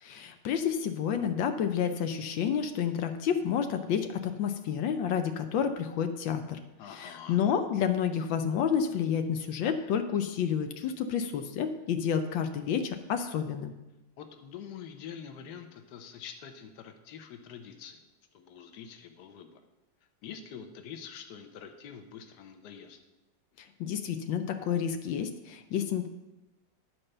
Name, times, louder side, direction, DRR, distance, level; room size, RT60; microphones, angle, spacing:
voice 1, 0.0-6.6 6.9-13.7 23.8-26.1, left 8 dB, 90° left, 7 dB, 1.5 m, -30 dB
voice 2, 6.8-7.4 14.2-18.0 18.3-19.6 20.2-23.0, left 7 dB, 65° left, 6 dB, 1.4 m, -45 dB
11.0 x 4.4 x 6.5 m, 1.0 s
omnidirectional pair, 2.0 m